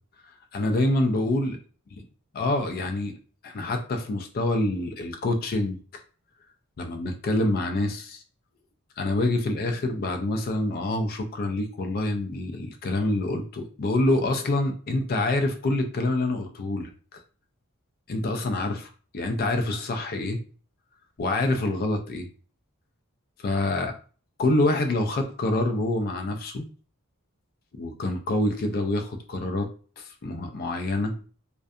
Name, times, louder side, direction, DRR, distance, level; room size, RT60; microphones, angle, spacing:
voice 1, 0.5-1.6 2.4-3.1 3.4-5.8 6.8-8.2 9.0-17.2 18.1-20.4 21.2-22.3 23.4-23.9 24.4-26.7 27.7-29.7 30.0-31.2, left 2 dB, 45° left, 5 dB, 0.4 m, -26 dB
2.6 x 2.2 x 2.4 m, 0.40 s
head